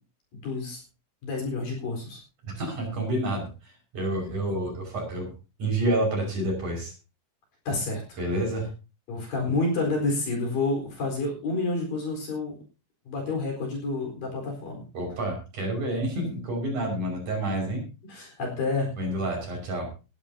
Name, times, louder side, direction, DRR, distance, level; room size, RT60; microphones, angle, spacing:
voice 1, 0.3-0.8 1.2-2.2 7.7-8.0 9.1-12.6 13.1-14.8 18.0-18.9, left 3 dB, 50° left, 0 dB, 5.8 m, -29 dB
voice 2, 2.4-5.3 5.6-6.9 8.2-8.7 14.9-17.8 19.0-19.9, right 1 dB, 40° right, 1 dB, 6.8 m, -29 dB
19.5 x 13.0 x 2.8 m, 0.31 s
omnidirectional pair, 5.5 m